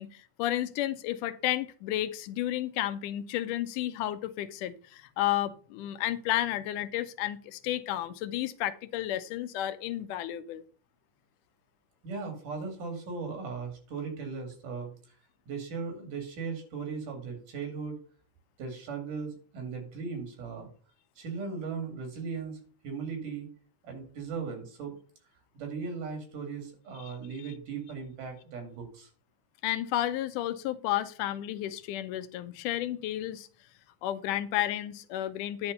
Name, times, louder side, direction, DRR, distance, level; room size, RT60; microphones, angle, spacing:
voice 1, 0.0-10.6 27.1-27.2 29.6-33.5 34.0-35.7, left 13 dB, 85° left, 13 dB, 2.2 m, -32 dB
voice 2, 12.0-15.2 15.5-18.0 18.6-20.7 21.2-23.5 23.8-25.0 25.5-29.1, right 5 dB, 85° right, 4 dB, 4.0 m, -38 dB
10.5 x 4.4 x 6.6 m, 0.42 s
omnidirectional pair, 3.6 m